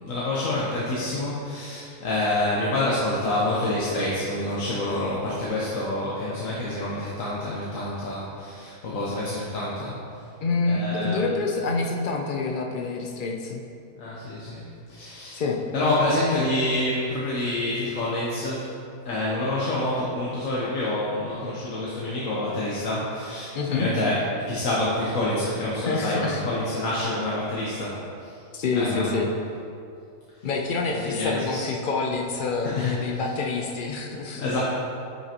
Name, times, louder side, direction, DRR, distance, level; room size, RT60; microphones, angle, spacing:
voice 1, 0.0-9.9 10.7-11.4 14.0-14.6 14.9-15.4 15.7-18.7 19.0-24.2 24.5-28.4 28.7-29.2 30.9-31.7 32.6-32.9 34.3-34.6, left 1 dB, 60° left, -7 dB, 1.4 m, -27 dB
voice 2, 10.4-13.6 15.3-15.6 23.5-23.9 25.8-26.4 28.5-29.3 30.4-34.4, left 4 dB, 85° left, 1 dB, 0.4 m, -27 dB
9.5 x 5.8 x 3.0 m, 2.5 s
omnidirectional pair, 1.6 m